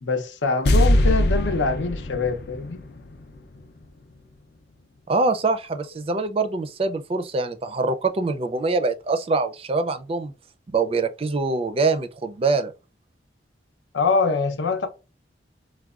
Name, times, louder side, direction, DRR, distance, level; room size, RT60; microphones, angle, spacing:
voice 1, 0.0-2.8 13.9-14.9, left 4 dB, 90° left, 0.7 m, -24 dB
sound 1, 0.7-4.1, left 1 dB, 60° left, 0.4 m, -22 dB
voice 2, 5.1-10.3 10.7-12.7, right 3 dB, 30° right, 0.4 m, -24 dB
4.5 x 2.2 x 2.4 m
head